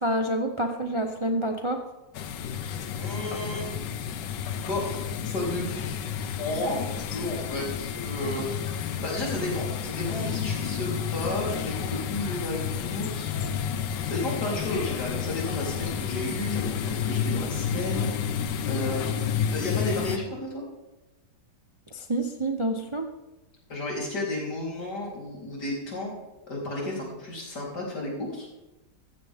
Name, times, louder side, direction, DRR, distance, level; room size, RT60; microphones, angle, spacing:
voice 1, 0.0-1.8 21.9-23.1, right 1 dB, 25° right, 4 dB, 0.6 m, -27 dB
sound 1, 2.1-20.2, left 8 dB, 90° left, 1.5 m, -30 dB
voice 2, 3.0-3.8 4.6-5.7 6.4-6.8 7.1-13.7 14.1-18.4 18.6-20.6 23.7-26.1 26.5-28.5, left 1 dB, 70° left, -3 dB, 4.5 m, -33 dB
15.0 x 14.0 x 3.6 m, 1.0 s
omnidirectional pair, 1.8 m